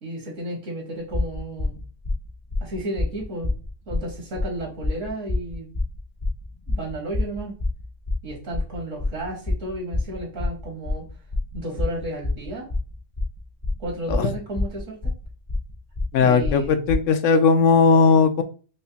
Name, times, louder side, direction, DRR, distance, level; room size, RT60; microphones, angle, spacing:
voice 1, 0.0-1.8 2.6-3.5 3.9-5.7 6.7-7.5 8.2-11.0 11.5-12.7 13.8-15.0 16.2-16.8, right 1 dB, 70° right, -1 dB, 1.8 m, -32 dB
sound 1, 1.1-17.0, left 2 dB, 35° left, 0.4 m, -27 dB
voice 2, 16.1-18.4, left 5 dB, 80° left, 9 dB, 0.9 m, -17 dB
4.9 x 2.2 x 2.8 m, 0.37 s
omnidirectional pair, 1.3 m